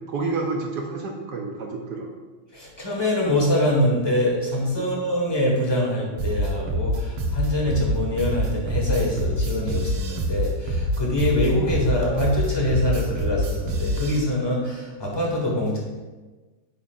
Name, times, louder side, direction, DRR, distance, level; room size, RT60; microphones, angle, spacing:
voice 1, 0.1-2.1 4.8-4.9, right 3 dB, 60° right, 1 dB, 1.2 m, -29 dB
voice 2, 2.5-15.8, left 1 dB, 15° left, -2 dB, 1.4 m, -24 dB
sound 1, 6.2-14.2, equal, 85° right, 1.9 m, -25 dB
9.1 x 7.1 x 2.5 m, 1.3 s
omnidirectional pair, 2.3 m